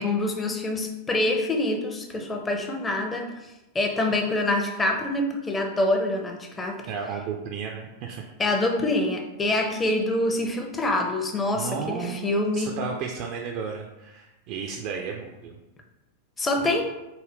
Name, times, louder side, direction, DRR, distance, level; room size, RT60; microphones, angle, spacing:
voice 1, 0.0-3.3 3.7-6.8 8.4-12.8 16.4-16.9, left 2 dB, 15° left, 3 dB, 0.5 m, -25 dB
voice 2, 6.9-8.2 11.5-15.6, right 6 dB, 45° right, 1 dB, 0.3 m, -33 dB
3.8 x 2.1 x 3.4 m, 1.0 s
figure-of-eight pair, 90°, 0 cm